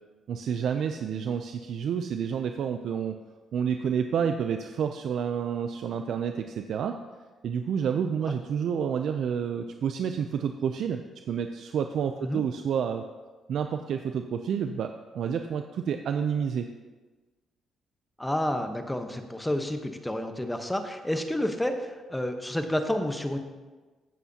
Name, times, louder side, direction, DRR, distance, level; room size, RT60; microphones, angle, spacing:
voice 1, 0.3-3.2 3.5-7.0 7.4-11.0 11.3-13.0 13.5-16.7, right 7 dB, 70° right, 7 dB, 0.5 m, -29 dB
voice 2, 18.2-23.4, left 1 dB, 5° left, 6 dB, 1.0 m, -30 dB
14.5 x 8.1 x 2.9 m, 1.3 s
cardioid pair, 90°, 0 cm